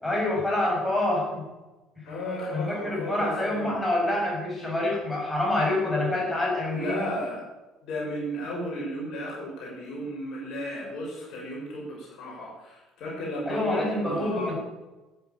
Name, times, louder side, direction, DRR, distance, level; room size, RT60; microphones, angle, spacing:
voice 1, 0.0-1.4 2.0-2.1 2.5-7.0 13.5-14.5, left 1 dB, 10° left, -2 dB, 7.0 m, -27 dB
voice 2, 2.0-3.7 6.7-7.4 7.8-14.5, equal, 55° left, -3 dB, 5.7 m, -34 dB
13.5 x 9.5 x 8.8 m, 1.1 s
figure-of-eight pair, 55°, 0 cm